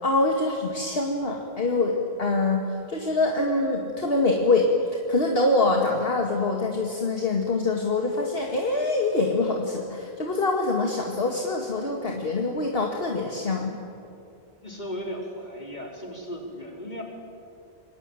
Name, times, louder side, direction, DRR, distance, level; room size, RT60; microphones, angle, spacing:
voice 1, 0.0-4.7 5.1-13.8, left 2 dB, 65° left, 1 dB, 2.3 m, -24 dB
voice 2, 14.6-17.0, equal, 45° left, 0 dB, 4.7 m, -36 dB
26.5 x 22.5 x 9.1 m, 2.6 s
omnidirectional pair, 1.1 m